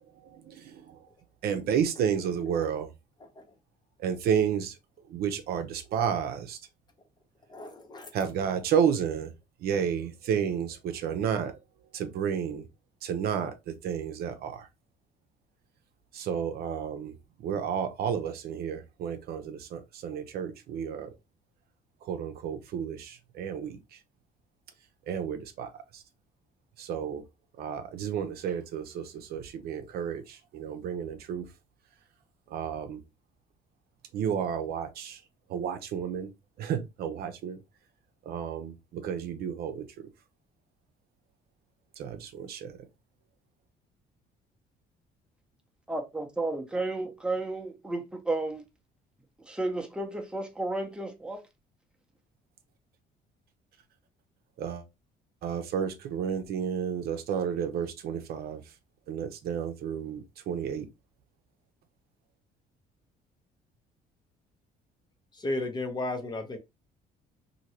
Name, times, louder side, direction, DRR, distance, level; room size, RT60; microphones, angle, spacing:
voice 1, 0.2-1.0 1.4-2.9 4.0-4.7 5.1-6.6 8.1-9.3 9.6-11.6 11.9-12.7 13.0-14.7 16.1-21.1 22.0-23.8 25.1-26.0 26.8-27.2 27.6-31.5 32.5-33.0 34.1-35.2 35.5-36.3 36.6-37.6 38.2-39.8 42.0-42.8 54.6-54.8 55.4-58.6 59.1-60.9, right 8 dB, 70° right, 0.6 m, -31 dB
voice 2, 7.5-8.1 65.4-66.6, left 2 dB, 25° left, 0.7 m, -33 dB
voice 3, 45.9-48.6 49.5-51.4, right 2 dB, 5° right, 0.7 m, -32 dB
2.9 x 2.7 x 2.8 m
cardioid pair, 110°, 17 cm